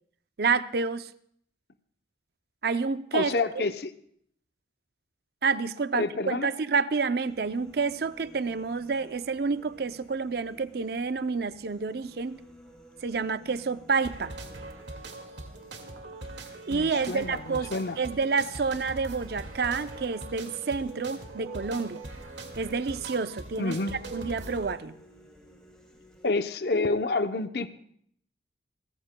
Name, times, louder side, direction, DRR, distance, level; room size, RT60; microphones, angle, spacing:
voice 1, 0.4-1.1 2.6-3.3 5.4-12.4 13.0-14.3 16.7-22.0 22.6-23.8 24.1-24.9, right 4 dB, 55° right, 13 dB, 0.5 m, -29 dB
voice 2, 3.1-3.9 5.9-6.5 16.7-18.0 23.6-23.9 26.2-27.7, left 3 dB, 55° left, 10 dB, 0.7 m, -28 dB
sound 1, 7.3-26.3, equal, ahead, 5.9 m, -54 dB
sound 2, 14.0-24.7, right 2 dB, 75° right, 2.0 m, -42 dB
30.0 x 14.0 x 2.2 m, 0.67 s
head